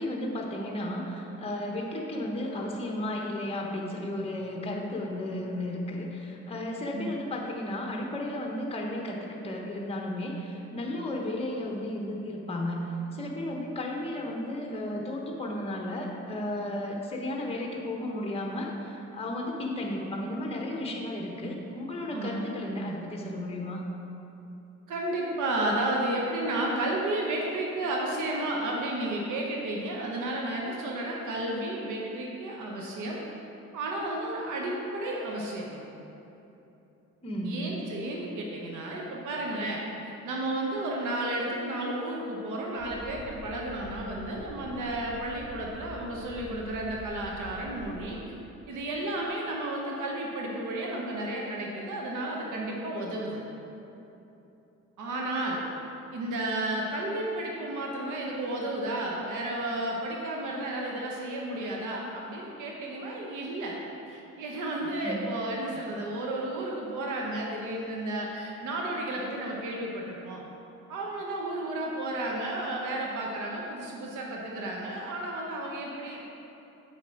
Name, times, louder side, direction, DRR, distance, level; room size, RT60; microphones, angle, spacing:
voice 1, 0.0-12.8 13.1-23.8 37.2-37.6 65.0-65.3 65.7-65.8, left 1 dB, 20° left, 0 dB, 1.0 m, -34 dB
voice 2, 22.1-22.5 24.9-33.2 33.7-35.8 37.4-39.8 40.2-48.2 48.7-53.4 55.0-55.6 56.1-63.8 64.0-70.4 70.9-76.2, right 1 dB, 80° right, -2 dB, 1.1 m, -32 dB
sound 1, 42.8-48.1, equal, 30° right, 1.6 m, -46 dB
7.7 x 5.8 x 4.5 m, 3.0 s
cardioid pair, 90°, 30 cm